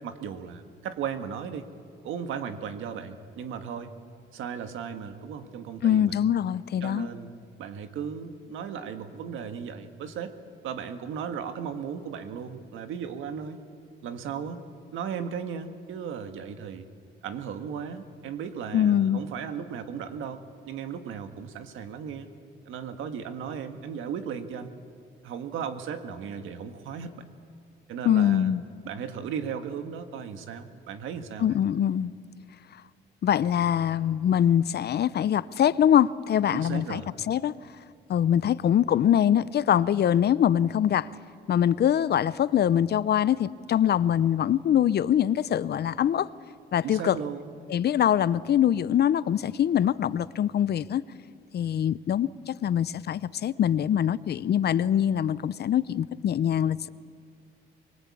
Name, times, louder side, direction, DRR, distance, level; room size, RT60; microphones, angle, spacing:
voice 1, 0.0-1.7 2.0-3.9 4.3-6.1 6.8-7.3 7.6-10.3 10.6-13.6 14.0-14.6 14.9-16.8 17.2-20.4 20.7-22.3 22.6-24.7 25.2-27.2 27.9-28.5 28.8-31.5 36.5-37.1 46.8-47.5, right 7 dB, 85° right, 8 dB, 1.7 m, -36 dB
voice 2, 5.8-7.1 18.7-19.2 28.0-28.6 31.4-32.1 33.2-37.5 38.1-41.1 41.5-46.3 46.7-47.2 47.7-51.0 51.5-56.9, left 10 dB, 55° left, 18 dB, 0.7 m, -23 dB
24.0 x 22.5 x 8.6 m, 2.2 s
cardioid pair, 90°, 20 cm